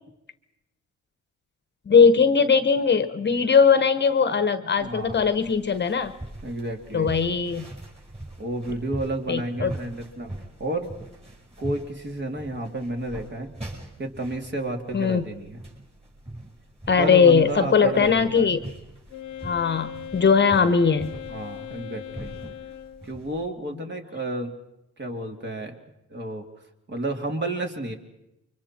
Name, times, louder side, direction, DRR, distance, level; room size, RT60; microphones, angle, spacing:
voice 1, 1.9-6.1 6.9-7.7 9.3-9.7 14.9-15.3 16.9-18.6 19.4-21.1, left 6 dB, 35° left, 11 dB, 1.2 m, -20 dB
sound 1, 4.7-23.5, right 1 dB, 20° right, 6.2 m, -42 dB
voice 2, 4.8-5.2 6.4-7.1 8.4-10.3 10.6-10.9 11.6-13.5 14.0-15.6 16.9-18.5 21.3-22.3 23.0-24.5 25.0-25.7 26.1-26.4 26.9-27.9, right 2 dB, 35° right, 3 dB, 3.0 m, -31 dB
Wind instrument woodwind instrument, 19.1-23.2, left 10 dB, 80° left, 1.1 m, -39 dB
29.5 x 24.0 x 4.5 m, 0.89 s
cardioid pair, 90°, 30 cm